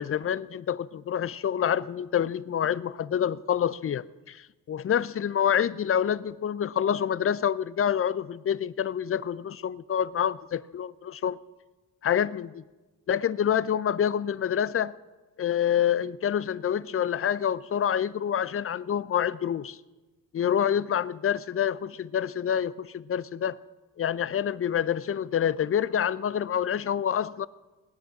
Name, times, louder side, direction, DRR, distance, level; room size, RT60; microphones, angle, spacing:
voice 1, 0.0-11.4 12.0-12.6 13.1-14.9 15.4-19.8 20.3-23.6 24.0-27.5, left 9 dB, 30° left, 17 dB, 0.5 m, -27 dB
17.0 x 10.0 x 5.9 m, 1.2 s
hypercardioid pair, 50°, 49 cm